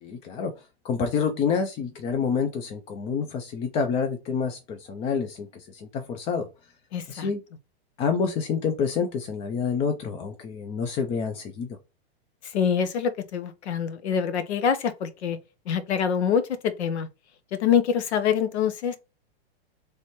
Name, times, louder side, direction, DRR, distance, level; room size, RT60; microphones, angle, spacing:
voice 1, 0.0-6.5 7.1-7.4 8.0-11.8, left 6 dB, 20° left, 0.3 m, -28 dB
voice 2, 6.9-7.3 12.4-15.4 15.7-17.1 17.5-19.0, left 7 dB, 85° left, 0.9 m, -25 dB
3.2 x 3.0 x 4.1 m
hypercardioid pair, 135°, 32 cm